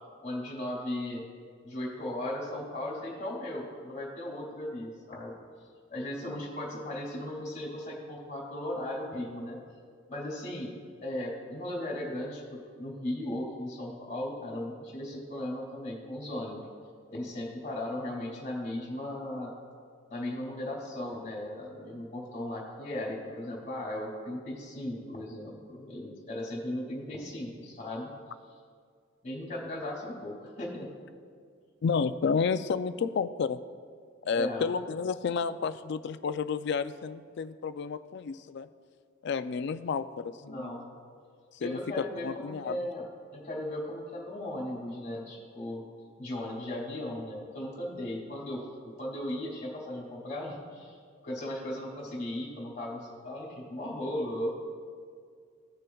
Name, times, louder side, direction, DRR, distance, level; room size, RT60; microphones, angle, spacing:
voice 1, 0.2-1.3 1.6-5.3 5.9-9.6 10.1-10.7 11.0-16.7 17.1-19.6 20.1-28.1 29.2-30.9 34.3-34.7 40.4-40.9 41.6-43.1 43.3-45.9 46.2-51.0 51.2-54.5, left 1 dB, 35° left, -2 dB, 2.2 m, -37 dB
voice 2, 31.8-33.6 34.3-38.7 39.2-40.7 41.6-42.8, left 5 dB, 55° left, 13 dB, 0.3 m, -31 dB
15.5 x 6.6 x 2.3 m, 2.1 s
head